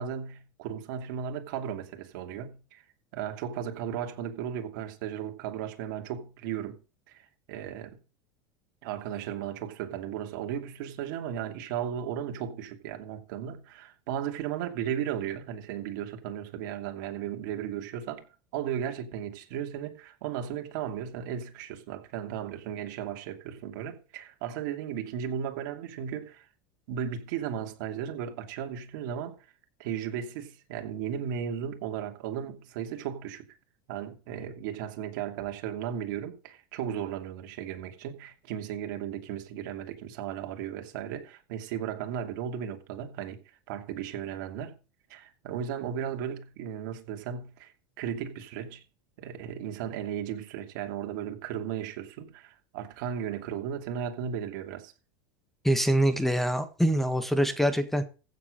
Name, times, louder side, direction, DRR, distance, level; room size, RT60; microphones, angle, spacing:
voice 1, 0.0-2.8 3.1-6.8 7.1-8.0 8.8-18.3 18.5-26.5 26.9-29.4 29.8-33.5 33.9-43.4 43.7-44.8 45.1-48.8 49.2-54.9, right 9 dB, 70° right, 2.7 m, -35 dB
voice 2, 55.6-58.0, equal, ahead, 1.6 m, -24 dB
15.5 x 7.3 x 5.1 m
supercardioid pair, 130°, 11 cm